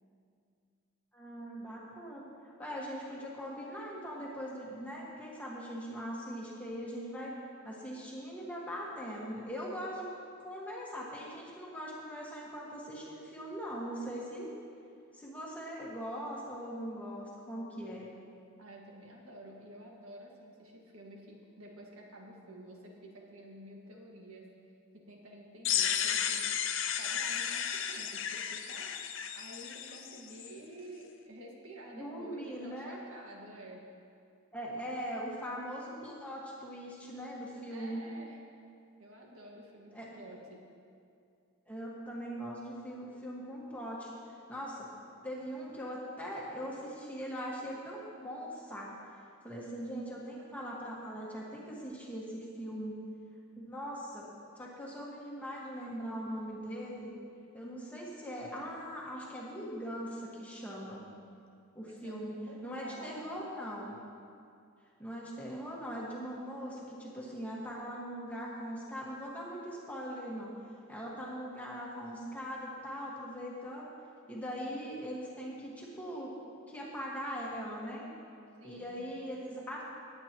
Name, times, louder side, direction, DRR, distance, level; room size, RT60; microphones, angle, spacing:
voice 1, 1.1-7.4 7.6-10.0 10.4-14.5 15.1-18.1 31.9-33.0 34.5-38.0 39.9-40.1 41.7-44.9 45.2-48.9 49.4-53.0 53.6-54.3 54.5-57.1 57.5-61.1 61.7-62.4 62.6-64.0 65.0-70.5 70.9-73.9 74.3-76.3 76.7-78.1 78.6-79.8, equal, 5° left, -5 dB, 1.6 m, -41 dB
voice 2, 18.6-24.5 24.9-26.5 27.0-33.8 37.7-38.4 39.0-40.6 61.9-63.3 78.6-79.1, right 1 dB, 75° right, -1 dB, 1.8 m, -50 dB
sound 1, 25.6-30.5, left 8 dB, 60° left, 0.6 m, -33 dB
19.5 x 8.8 x 3.0 m, 2.4 s
head